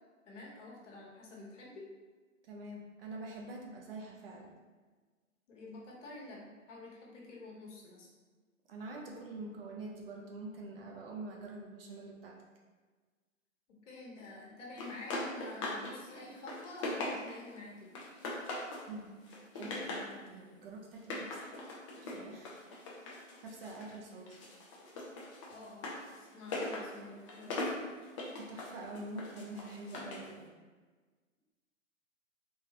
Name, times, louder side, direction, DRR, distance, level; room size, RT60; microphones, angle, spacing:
voice 1, 0.2-1.8 5.5-8.1 13.8-18.0 23.9-24.0 25.5-27.8, left 2 dB, 60° left, -3 dB, 1.2 m, -49 dB
voice 2, 2.4-4.5 8.7-12.4 18.9-21.6 22.0-22.5 23.4-24.4 28.3-30.5, right 2 dB, 45° right, 0 dB, 0.6 m, -46 dB
sound 1, 14.8-15.9 16.3-17.5 17.9-18.9 19.2-20.1 20.9-24.0 24.3-30.3, left 2 dB, 25° left, 0.5 m, -40 dB
3.7 x 2.6 x 2.9 m, 1.4 s
hypercardioid pair, 130°, 41 cm